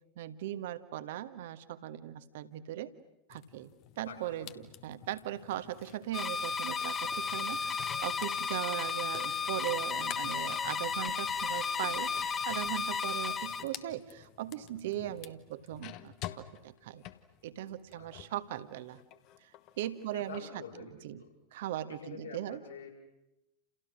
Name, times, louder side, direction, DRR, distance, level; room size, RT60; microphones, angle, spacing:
voice 1, 0.1-2.9 3.3-17.0 17.4-19.0 19.4-19.5 19.8-20.5 21.0-21.2 21.5-22.6, right 13 dB, 55° right, 11 dB, 1.6 m, -39 dB
sound 1, 3.3-18.4 18.8-20.5, left 13 dB, 40° left, 1.4 m, -51 dB
voice 2, 4.0-4.4 15.0-15.1 17.9-18.1 20.1-21.3 21.9-22.9, left 5 dB, 75° left, 0 dB, 7.2 m, -47 dB
sound 2, 6.1-13.6, left 5 dB, 20° left, 1.9 m, -34 dB
29.5 x 29.0 x 6.4 m, 0.93 s
figure-of-eight pair, 90°, 0 cm